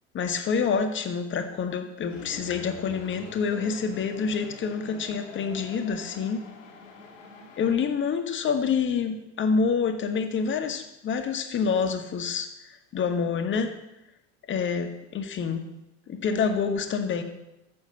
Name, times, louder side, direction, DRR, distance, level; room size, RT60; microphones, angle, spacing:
voice 1, 0.1-6.4 7.6-12.5 12.9-13.7 14.5-15.7 16.1-17.2, left 5 dB, 30° left, 7 dB, 1.1 m, -27 dB
sound 1, 2.1-7.8, left 5 dB, 70° left, 1.4 m, -45 dB
7.0 x 6.3 x 6.8 m, 0.92 s
figure-of-eight pair, 65°, 38 cm